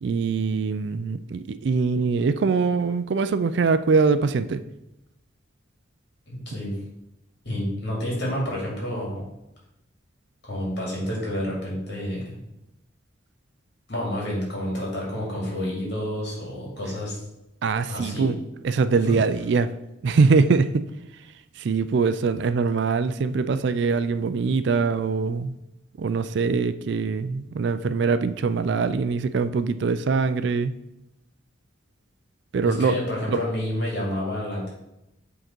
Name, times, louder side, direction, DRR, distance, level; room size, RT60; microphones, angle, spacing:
voice 1, 0.0-4.6 17.6-18.4 18.6-19.7 20.0-20.8 21.6-25.5 26.0-30.7 32.5-32.9 33.3-33.4, right 4 dB, 60° right, 12 dB, 0.3 m, -23 dB
voice 2, 6.3-6.8 7.4-9.2 10.4-12.3 13.9-17.2 17.9-18.3 19.1-19.2 32.6-34.7, left 1 dB, 55° left, -4 dB, 2.6 m, -29 dB
7.9 x 3.8 x 4.4 m, 0.89 s
head